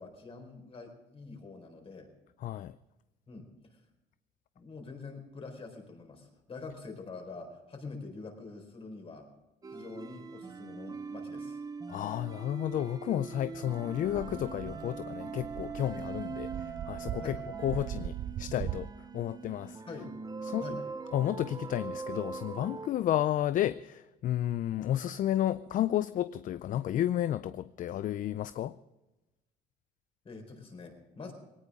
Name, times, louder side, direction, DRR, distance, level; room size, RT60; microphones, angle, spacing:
voice 1, 0.0-2.1 3.3-3.5 4.6-9.2 9.7-11.6 17.2-17.4 19.9-20.1 20.6-20.8 30.2-31.3, left 3 dB, 35° left, 4.3 m, -45 dB
voice 2, 2.4-2.8 11.9-19.8 20.4-20.7 21.1-28.8, left 12 dB, 50° left, 0.4 m, -32 dB
sound 1, 9.6-22.9, right 4 dB, 20° right, 0.8 m, -42 dB
Wind instrument woodwind instrument, 13.4-18.0, right 9 dB, 65° right, 2.0 m, -45 dB
sound 2, 14.0-18.9, right 11 dB, 50° right, 0.5 m, -40 dB
19.5 x 18.0 x 3.7 m
cardioid pair, 110°, 17 cm